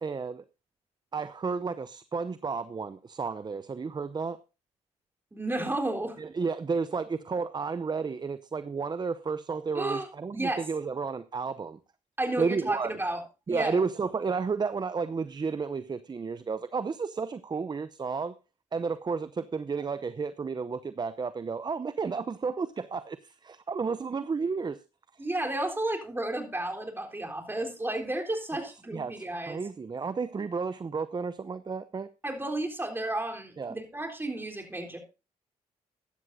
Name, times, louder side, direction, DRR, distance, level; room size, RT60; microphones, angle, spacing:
voice 1, 0.0-0.4 1.1-4.4 6.2-11.8 12.4-12.9 13.5-18.3 18.7-24.8 28.9-32.1 33.6-33.8, right 5 dB, 30° right, 14 dB, 0.7 m, -32 dB
voice 2, 5.3-6.2 9.7-10.1 10.3-10.7 12.2-13.2 13.5-13.8 25.2-29.6 32.2-35.0, right 1 dB, 15° right, 2 dB, 3.7 m, -32 dB
14.5 x 12.0 x 2.7 m, 0.29 s
supercardioid pair, 65°, 14 cm